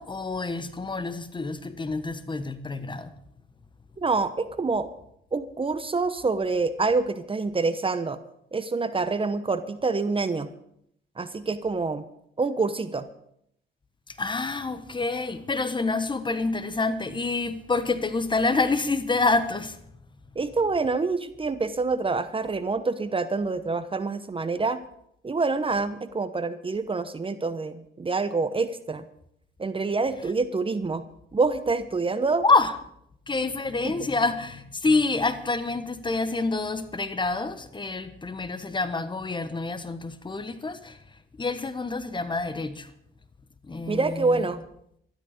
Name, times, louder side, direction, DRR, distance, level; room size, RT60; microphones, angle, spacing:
voice 1, 0.0-3.1 14.1-19.8 32.4-32.7 33.3-41.0 41.4-42.9 43.6-44.5, left 3 dB, 25° left, 11 dB, 1.4 m, -27 dB
voice 2, 4.0-4.9 5.3-8.2 8.5-10.5 11.2-12.0 12.4-13.1 20.3-24.8 25.2-29.0 29.6-31.0 31.3-32.4 33.8-34.1 43.9-44.6, right 3 dB, 25° right, 12 dB, 1.0 m, -26 dB
13.0 x 12.5 x 6.7 m, 0.72 s
cardioid pair, 90°, 20 cm